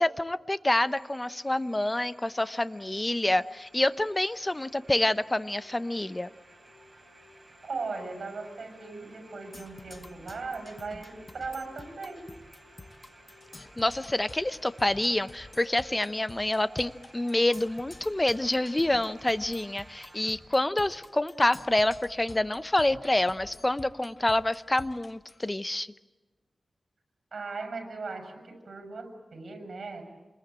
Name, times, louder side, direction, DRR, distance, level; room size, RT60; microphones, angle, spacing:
voice 1, 0.0-6.3 13.8-25.9, left 1 dB, 20° left, 14 dB, 0.8 m, -27 dB
sound 1, 0.9-20.3, right 1 dB, 20° right, 7.3 m, -55 dB
voice 2, 7.6-12.3 27.3-30.1, right 4 dB, 70° right, 6 dB, 6.2 m, -38 dB
Percussion, 9.5-25.5, left 2 dB, 35° left, 1.1 m, -50 dB
27.5 x 21.0 x 9.0 m, 1.2 s
wide cardioid pair, 90°, 0 cm